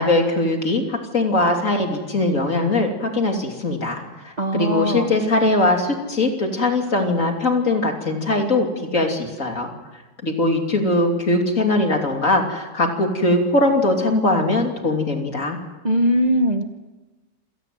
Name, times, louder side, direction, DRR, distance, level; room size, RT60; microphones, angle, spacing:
voice 1, 0.0-8.7 8.9-9.7 10.2-15.6, left 2 dB, 45° left, 3 dB, 3.4 m, -21 dB
voice 2, 4.4-5.1 15.8-16.6, equal, 30° right, 5 dB, 1.0 m, -20 dB
27.0 x 18.5 x 7.8 m, 1.2 s
omnidirectional pair, 1.9 m